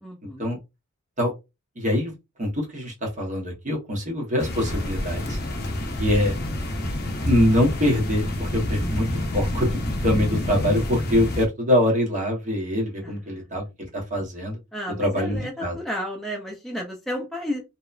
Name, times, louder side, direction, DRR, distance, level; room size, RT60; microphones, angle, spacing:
voice 1, 0.0-0.5 13.0-13.5 14.7-17.6, equal, ahead, -1 dB, 0.4 m, -32 dB
voice 2, 1.8-2.1 2.4-5.4 6.0-6.3 7.3-9.1 9.3-13.6 13.9-14.6 15.0-15.7, left 1 dB, 35° right, -1 dB, 0.9 m, -24 dB
sound 1, 4.4-11.5, left 1 dB, 50° left, 0.6 m, -28 dB
2.8 x 2.1 x 2.4 m, 0.24 s
head